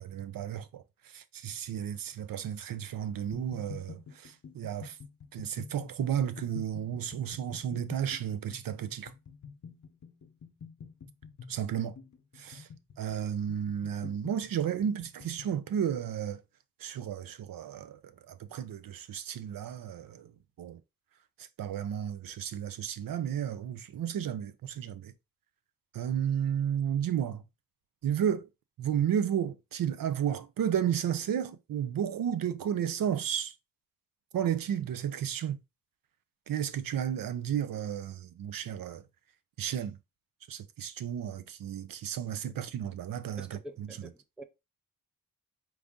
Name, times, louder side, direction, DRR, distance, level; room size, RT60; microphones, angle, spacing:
voice 1, 0.0-5.0 5.3-9.1 11.5-12.0 12.4-12.7 13.0-16.4 16.8-18.0 18.3-20.3 20.6-20.8 21.4-25.1 25.9-27.4 28.0-28.5 28.8-33.5 34.3-35.6 36.5-39.0 39.6-40.0 40.5-43.9, right 9 dB, 80° right, 0.6 m, -33 dB
sound 1, 3.3-15.6, left 6 dB, 55° left, 0.8 m, -48 dB
voice 2, 43.4-44.4, right 1 dB, 5° right, 0.4 m, -47 dB
4.7 x 2.7 x 3.5 m
wide cardioid pair, 155°, 33 cm